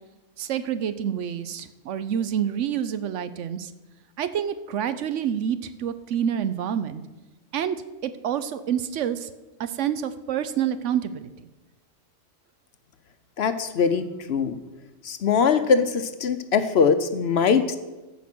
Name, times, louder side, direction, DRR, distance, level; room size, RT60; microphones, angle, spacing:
voice 1, 0.4-3.7 4.2-7.0 7.5-7.8 8.0-9.3 9.6-11.5, right 9 dB, 70° right, 12 dB, 0.9 m, -28 dB
voice 2, 13.4-14.6 15.0-17.8, left 6 dB, 60° left, 9 dB, 0.8 m, -22 dB
14.5 x 5.2 x 6.0 m, 1.1 s
omnidirectional pair, 1.4 m